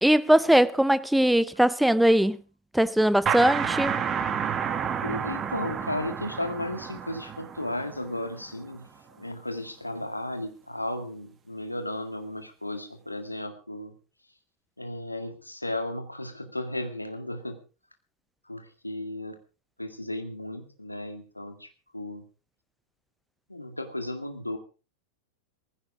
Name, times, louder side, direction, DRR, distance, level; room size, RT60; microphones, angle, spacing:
voice 1, 0.0-2.4 2.7-4.0, right 1 dB, ahead, 0.7 m, -21 dB
sound 1, 3.3-8.7, right 7 dB, 25° right, 1.7 m, -30 dB
voice 2, 5.0-13.9 14.8-17.6 18.5-19.4 19.8-22.2 23.5-24.6, left 1 dB, 85° left, 2.1 m, -34 dB
19.0 x 15.5 x 3.7 m
figure-of-eight pair, 90°, 0 cm